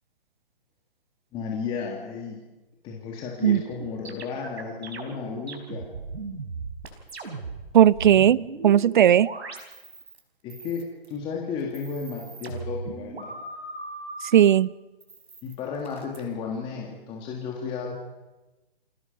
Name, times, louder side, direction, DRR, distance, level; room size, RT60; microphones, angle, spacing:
voice 1, 1.3-2.4 2.8-5.9 10.4-13.4 15.4-18.0, left 5 dB, 15° left, 0 dB, 1.9 m, -33 dB
sound 1, 3.7-7.6 7.9-10.2 10.5-11.2 11.6-14.3 15.0-16.2, right 3 dB, 85° right, 4.7 m, -38 dB
voice 2, 7.7-9.3 14.3-14.7, right 10 dB, 50° right, 22 dB, 0.6 m, -17 dB
28.0 x 17.5 x 5.3 m, 1.1 s
hypercardioid pair, 155°, 32 cm